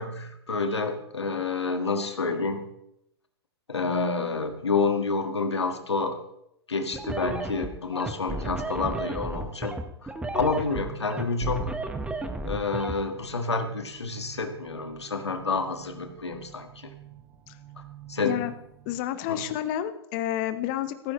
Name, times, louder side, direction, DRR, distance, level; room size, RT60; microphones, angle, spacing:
voice 1, 0.0-2.7 3.7-6.2 6.7-11.8 12.4-16.9 18.1-18.4 19.3-19.4, left 4 dB, 85° left, 6 dB, 1.7 m, -29 dB
sound 1, 6.9-12.9, right 2 dB, 10° right, 1.2 m, -33 dB
sound 2, 10.5-19.0, right 12 dB, 25° right, 1.1 m, -49 dB
voice 2, 18.8-21.1, left 12 dB, 45° left, 10 dB, 1.1 m, -30 dB
15.5 x 14.5 x 3.1 m, 0.77 s
hypercardioid pair, 110°, 14 cm